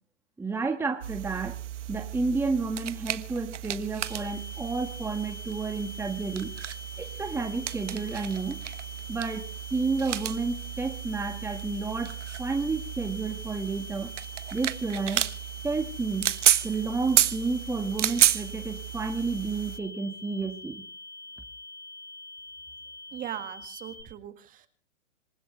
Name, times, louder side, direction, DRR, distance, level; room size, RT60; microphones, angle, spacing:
voice 1, 0.4-1.6 1.9-6.5 7.0-8.6 9.1-9.4 9.7-14.1 14.5-15.3 15.6-16.3 16.6-20.8, right 4 dB, 5° right, 4 dB, 1.7 m, -31 dB
sound 1, 1.0-19.8, right 11 dB, 75° right, 1.5 m, -32 dB
sound 2, 4.0-24.0, left 2 dB, 60° left, 5.6 m, -45 dB
voice 2, 23.1-24.7, right 11 dB, 20° right, 10 dB, 1.9 m, -39 dB
27.5 x 15.5 x 3.3 m, 0.39 s
hypercardioid pair, 135°, 37 cm